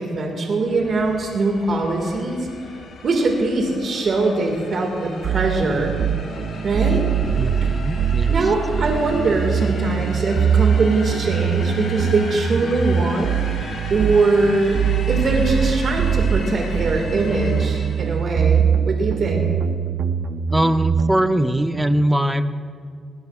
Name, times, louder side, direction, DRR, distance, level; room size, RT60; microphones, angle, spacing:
voice 1, 0.0-2.5 3.0-5.9 6.6-7.0 8.3-13.3 13.9-14.8 15.1-19.4, right 3 dB, 50° right, 1 dB, 1.9 m, -21 dB
sound 1, 0.7-18.4, left 3 dB, 65° left, 3.9 m, -37 dB
sound 2, 5.2-21.2, right 8 dB, 70° right, 0.4 m, -22 dB
voice 2, 7.4-8.4 20.5-22.4, right 1 dB, 5° right, 10 dB, 0.6 m, -21 dB
20.5 x 16.5 x 2.4 m, 2.1 s
cardioid pair, 105°, 0 cm